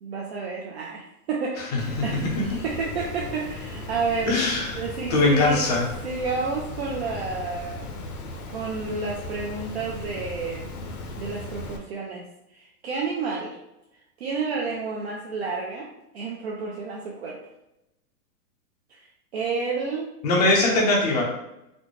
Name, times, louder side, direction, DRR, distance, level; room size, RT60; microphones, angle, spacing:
voice 1, 0.0-4.4 4.7-5.6 6.0-7.9 8.5-10.7 11.2-12.2 12.5-13.5 14.2-15.9 16.1-17.4 18.9-19.0 19.3-20.1, right 4 dB, 45° right, -3 dB, 0.5 m, -30 dB
Water, 1.8-11.8, left 2 dB, 65° left, 0.8 m, -37 dB
voice 2, 4.3-4.8 5.1-5.9 20.2-21.2, left 2 dB, 25° left, -2 dB, 0.5 m, -21 dB
4.1 x 2.1 x 3.0 m, 0.88 s
supercardioid pair, 165°, 48 cm